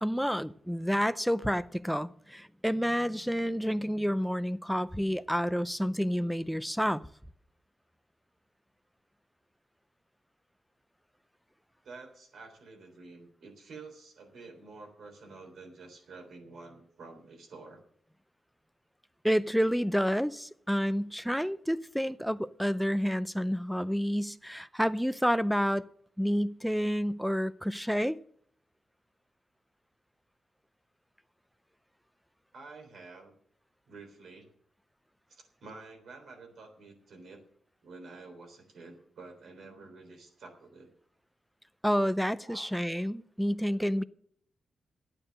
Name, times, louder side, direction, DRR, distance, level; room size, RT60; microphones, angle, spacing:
voice 1, 0.0-7.0 19.2-25.9 26.2-28.2 41.8-44.0, equal, ahead, 0.5 m, -29 dB
voice 2, 11.8-17.8 32.5-33.3 33.9-34.5 35.3-37.4 37.8-40.9 42.4-42.7, right 3 dB, 80° right, 3.6 m, -49 dB
12.0 x 8.9 x 6.3 m
wide cardioid pair, 110°, 0 cm